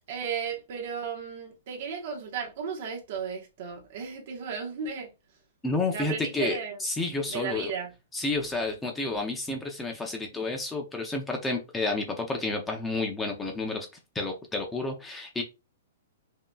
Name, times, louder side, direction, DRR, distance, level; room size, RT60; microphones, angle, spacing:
voice 1, 0.1-5.1 5.9-6.8 7.2-7.9, right 6 dB, 50° right, 1.2 m, -35 dB
voice 2, 5.6-7.7 8.1-13.9 14.1-15.4, left 2 dB, 5° left, 0.6 m, -30 dB
5.4 x 2.8 x 2.3 m
hypercardioid pair, 165°, 0 cm